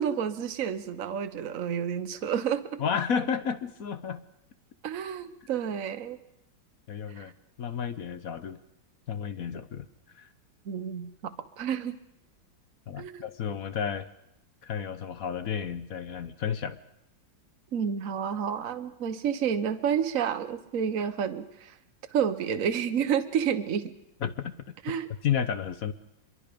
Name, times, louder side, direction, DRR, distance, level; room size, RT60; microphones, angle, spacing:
voice 1, 0.0-2.8 4.8-6.2 7.2-7.3 10.6-12.0 13.0-13.2 17.7-21.8 22.1-23.9 24.8-25.1, right 8 dB, 50° right, 9 dB, 1.3 m, -30 dB
voice 2, 2.8-4.2 6.9-7.3 7.6-8.6 9.1-9.9 10.1-10.3 12.9-14.1 14.6-16.8 24.2-24.5 25.2-25.9, left 7 dB, 55° left, 12 dB, 1.2 m, -31 dB
25.0 x 22.5 x 5.2 m, 0.84 s
omnidirectional pair, 2.1 m